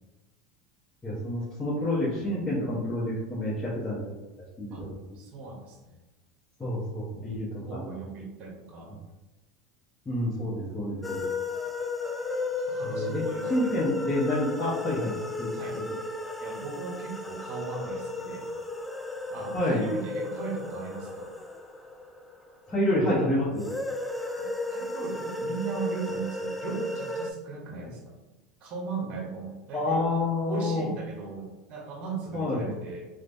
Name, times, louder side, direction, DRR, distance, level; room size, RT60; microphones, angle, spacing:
voice 1, 1.0-4.2 4.6-5.2 6.6-8.0 10.1-11.3 12.8-13.2 13.5-15.1 15.4-15.5 19.5-19.8 22.7-23.7 27.7-27.9 29.7-30.9 32.3-32.8, left 1 dB, 20° left, -9 dB, 0.9 m, -28 dB
voice 2, 5.1-6.0 7.6-8.9 10.3-10.9 12.7-13.9 15.5-15.8 16.4-18.5 19.3-21.3 24.4-28.1 28.6-30.0 30.4-33.1, right 4 dB, 50° right, 0 dB, 0.8 m, -38 dB
sound 1, 11.0-22.8 23.6-27.3, left 2 dB, 5° left, 0.3 m, -34 dB
3.1 x 2.2 x 2.5 m, 1.1 s
hypercardioid pair, 95°, 2 cm